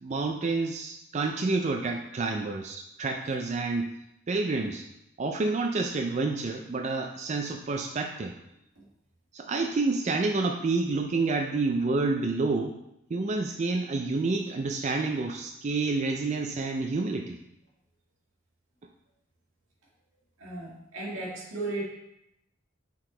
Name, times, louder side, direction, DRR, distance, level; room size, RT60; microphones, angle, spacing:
voice 1, 0.0-3.9 4.3-4.8 5.2-8.3 9.3-12.8 13.1-17.4, right 3 dB, 35° right, 3 dB, 0.4 m, -29 dB
voice 2, 20.4-21.8, right 2 dB, 85° right, -3 dB, 1.9 m, -35 dB
5.9 x 4.6 x 3.8 m, 0.83 s
head